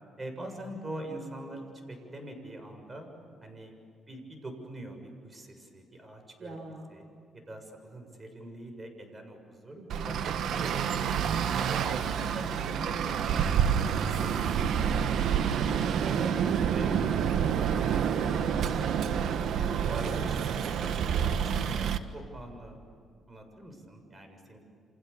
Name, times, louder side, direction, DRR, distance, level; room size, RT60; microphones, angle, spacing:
voice 1, 0.2-3.1 3.4-3.8 4.1-5.0 5.2-6.6 6.9-7.0 7.3-11.1 11.7-14.5 16.7-17.1 17.6-19.3 19.5-22.8 23.3-24.6, right 1 dB, 25° right, 5 dB, 7.1 m, -44 dB
voice 2, 6.4-7.0 9.7-10.1 16.0-17.2 20.0-20.8, right 2 dB, 55° right, 4 dB, 3.6 m, -43 dB
Traffic noise roadway noise, 9.9-22.0, right 8 dB, 75° right, 1.4 m, -28 dB
29.5 x 27.5 x 7.1 m, 2.4 s
cardioid pair, 90°, 0 cm